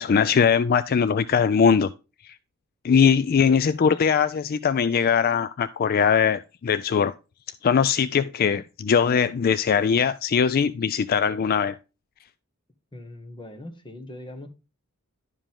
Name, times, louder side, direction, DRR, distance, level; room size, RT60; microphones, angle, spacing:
voice 1, 0.0-1.9 2.2-2.3 2.8-7.1 7.6-11.8, left 6 dB, 45° left, 0.4 m, -21 dB
voice 2, 12.9-14.5, left 1 dB, 20° left, 1.4 m, -40 dB
11.0 x 5.2 x 3.6 m
head